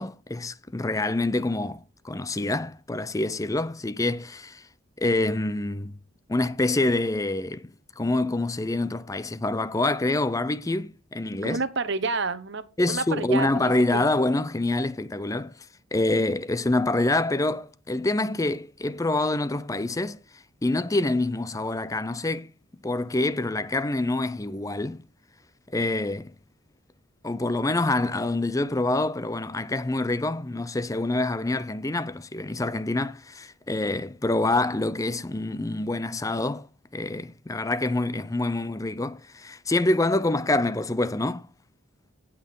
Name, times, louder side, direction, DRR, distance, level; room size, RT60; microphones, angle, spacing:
voice 1, 0.0-4.6 5.0-5.9 6.3-7.7 8.0-11.6 12.8-15.5 15.9-20.2 20.6-22.5 22.8-25.0 25.7-26.3 27.2-36.7 36.9-41.5, left 2 dB, 15° left, 0.5 m, -26 dB
voice 2, 11.4-12.6 12.9-14.0, right 3 dB, 55° right, 1.1 m, -29 dB
17.5 x 6.0 x 3.7 m
head